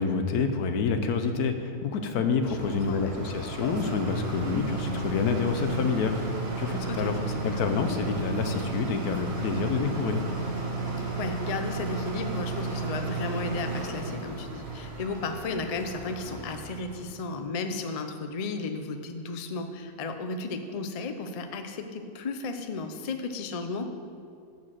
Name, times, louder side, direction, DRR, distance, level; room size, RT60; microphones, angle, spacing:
voice 1, 0.0-10.2, left 5 dB, 85° left, 7 dB, 1.3 m, -28 dB
sound 1, 2.4-17.1, right 3 dB, 45° right, 1.3 m, -33 dB
voice 2, 2.5-3.1 6.9-7.1 11.0-23.9, left 3 dB, 60° left, 6 dB, 0.4 m, -34 dB
7.3 x 6.3 x 7.4 m, 2.4 s
omnidirectional pair, 1.6 m